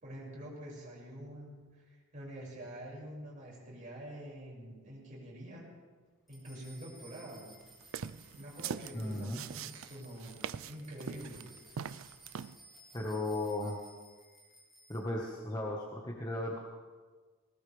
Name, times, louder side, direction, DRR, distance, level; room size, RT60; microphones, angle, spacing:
voice 1, 0.0-5.7 6.3-7.5 8.4-10.4 10.6-11.5, right 1 dB, 40° right, -5 dB, 6.2 m, -46 dB
sound 1, 6.3-15.0, right 2 dB, ahead, 6.3 m, -58 dB
sound 2, 7.8-12.6, right 7 dB, 80° right, 0.4 m, -42 dB
voice 2, 8.9-9.4 12.9-13.8 14.9-16.6, left 1 dB, 20° left, -2 dB, 1.5 m, -36 dB
20.5 x 19.0 x 3.5 m, 1.4 s
head